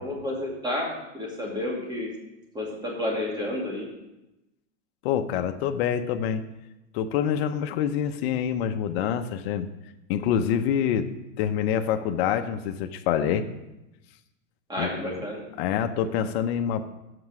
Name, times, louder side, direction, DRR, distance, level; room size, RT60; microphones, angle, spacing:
voice 1, 0.0-2.1 2.5-3.9 14.7-15.4, left 1 dB, 10° right, -2 dB, 2.5 m, -30 dB
voice 2, 5.0-6.4 6.9-9.7 10.1-11.1 11.4-13.4 14.8-15.3 15.6-16.9, left 9 dB, 55° left, 7 dB, 0.8 m, -26 dB
7.9 x 5.9 x 7.6 m, 0.95 s
supercardioid pair, 145°, 37 cm